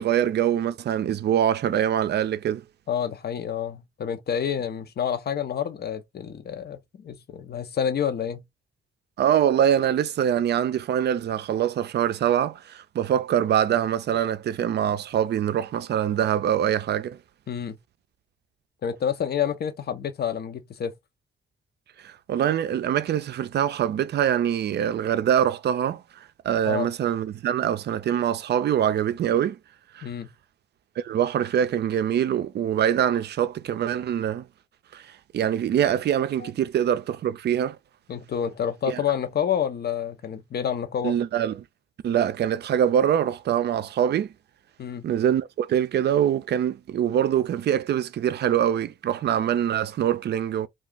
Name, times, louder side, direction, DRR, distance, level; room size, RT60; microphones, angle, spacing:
voice 1, 0.0-2.6 9.2-17.2 22.0-26.0 26.4-29.6 29.9-30.1 31.0-34.5 34.9-35.0 35.3-37.8 38.9-39.0 41.0-41.5 42.0-44.3 45.0-50.7, right 10 dB, 55° right, 0.4 m, -24 dB
voice 2, 2.9-8.4 17.5-17.8 18.8-20.9 26.6-26.9 30.0-30.3 36.4-36.5 38.1-41.2 44.8-45.1, left 8 dB, 50° left, 0.7 m, -28 dB
2.4 x 2.4 x 3.6 m
supercardioid pair, 50°, 20 cm